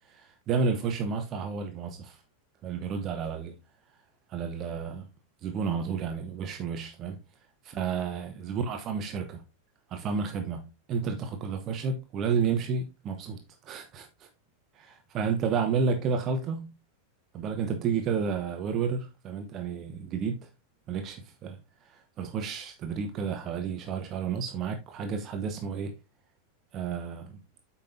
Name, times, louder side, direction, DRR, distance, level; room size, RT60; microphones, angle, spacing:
voice 1, 0.1-2.2 2.6-3.5 4.3-5.1 5.4-7.2 7.6-9.4 9.9-14.3 14.8-16.7 17.3-20.5 20.9-21.6 21.8-25.9 26.7-27.4, right 5 dB, 35° right, 1.0 m, -31 dB
8.7 x 5.7 x 2.8 m
figure-of-eight pair, 90°, 0 cm